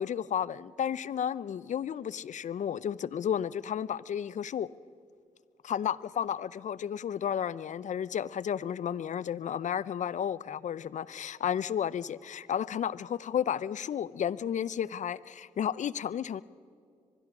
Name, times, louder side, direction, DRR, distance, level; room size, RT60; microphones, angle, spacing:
voice 1, 0.0-4.7 5.6-16.4, left 9 dB, 55° left, 20 dB, 0.6 m, -32 dB
23.5 x 21.5 x 6.1 m, 2.3 s
supercardioid pair, 50°, 15 cm